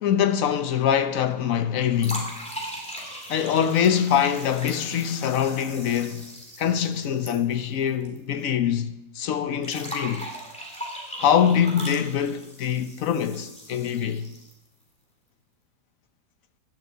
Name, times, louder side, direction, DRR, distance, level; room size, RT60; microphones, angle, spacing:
voice 1, 0.0-2.4 3.3-6.3 6.6-10.3 11.2-14.3, left 8 dB, 60° left, 1.1 m, -24 dB
sound 1, 2.0-8.2 8.4-8.5 9.6-14.7, equal, 5° left, 2.7 m, -39 dB
11.0 x 7.4 x 8.0 m
omnidirectional pair, 1.8 m